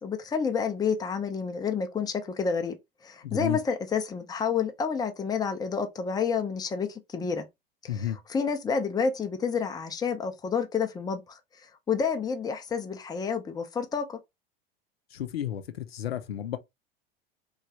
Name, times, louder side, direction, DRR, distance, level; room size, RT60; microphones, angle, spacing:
voice 1, 0.0-2.8 3.0-7.5 7.8-11.4 11.9-14.2, left 6 dB, 15° left, 0.6 m, -29 dB
voice 2, 3.2-3.6 7.9-8.2 15.1-16.6, left 10 dB, 90° left, 0.5 m, -32 dB
3.0 x 2.4 x 2.8 m
hypercardioid pair, 90°, 29 cm